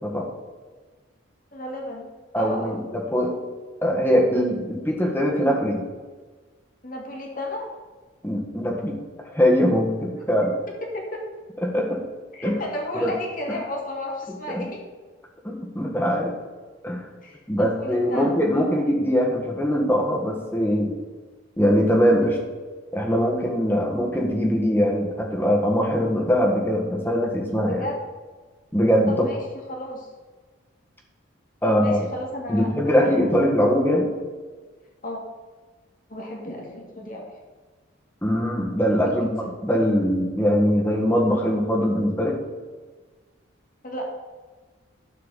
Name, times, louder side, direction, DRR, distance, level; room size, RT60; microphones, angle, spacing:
voice 1, 1.5-2.8 6.8-7.8 10.7-11.3 12.3-14.9 17.2-18.4 27.7-28.0 29.1-29.4 29.7-30.1 31.6-33.4 35.0-35.2 36.1-37.4 39.2-39.5 43.8-44.1, left 1 dB, 40° left, 0 dB, 2.3 m, -33 dB
voice 2, 2.3-3.3 3.8-5.8 8.2-9.0 9.3-10.5 11.6-12.0 12.4-12.6 12.9-13.1 14.5-14.6 15.4-16.3 16.8-17.0 17.5-20.9 21.6-22.4 22.9-27.8 28.7-29.3 31.6-32.0 32.5-34.1 38.2-39.3 39.6-42.3, equal, 10° left, 0 dB, 1.7 m, -22 dB
12.0 x 4.7 x 7.5 m, 1.4 s
head